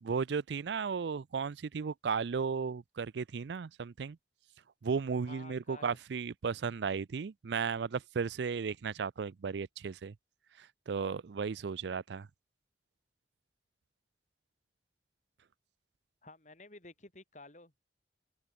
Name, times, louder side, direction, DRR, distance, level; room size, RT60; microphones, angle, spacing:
voice 1, 0.0-4.2 4.8-10.1 10.6-12.3, right 5 dB, 75° right, 0.4 m, -35 dB
voice 2, 5.2-6.0 16.2-17.8, left 2 dB, 40° left, 3.5 m, -52 dB
open air
head